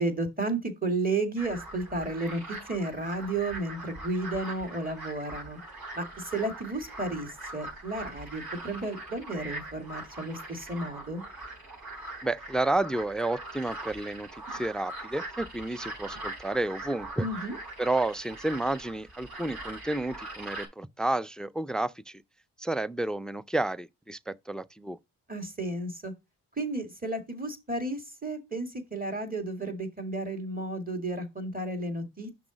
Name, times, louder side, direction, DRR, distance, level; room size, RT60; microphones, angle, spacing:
voice 1, 0.0-5.6 5.9-11.2 17.2-17.6 25.3-26.1 26.6-32.3, right 2 dB, 20° right, 2.0 m, -33 dB
sound 1, 1.4-20.7, right 2 dB, 55° right, 3.9 m, -42 dB
voice 2, 12.2-17.3 17.8-22.2 22.6-25.0, right 2 dB, ahead, 0.3 m, -31 dB
6.0 x 4.2 x 5.0 m
cardioid pair, 55°, 44 cm